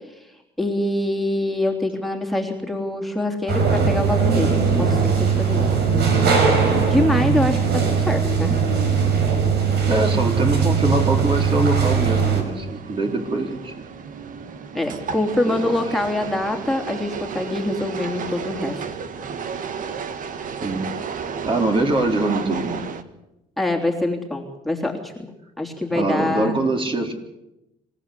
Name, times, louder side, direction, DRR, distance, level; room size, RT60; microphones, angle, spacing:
voice 1, 0.6-5.7 6.9-8.6 14.7-18.8 23.6-25.3 25.6-26.6, left 1 dB, ahead, 3 dB, 3.2 m, -24 dB
sound 1, 3.5-12.4, right 6 dB, 75° right, 5.6 m, -19 dB
sound 2, 9.7-23.0, right 6 dB, 50° right, 1.8 m, -33 dB
voice 2, 9.9-13.7 15.5-15.7 20.6-20.9 21.4-22.7 25.9-27.1, right 2 dB, 30° right, 3 dB, 4.1 m, -23 dB
26.5 x 16.0 x 8.4 m, 0.91 s
cardioid pair, 110°, 17 cm